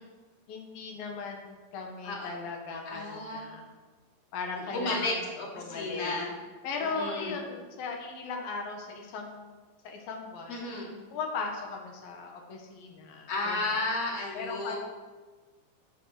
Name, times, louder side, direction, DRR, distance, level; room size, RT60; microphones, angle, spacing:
voice 1, 0.5-3.7 4.3-5.3 5.6-6.1 6.6-9.6 9.8-10.6 11.1-13.6 14.3-14.7, left 4 dB, 90° left, 1 dB, 3.4 m, -37 dB
voice 2, 2.9-3.5 4.7-6.3 6.9-7.3 10.5-10.9 13.3-14.8, left 2 dB, 45° left, -3 dB, 3.8 m, -33 dB
14.5 x 7.7 x 6.6 m, 1.3 s
omnidirectional pair, 4.0 m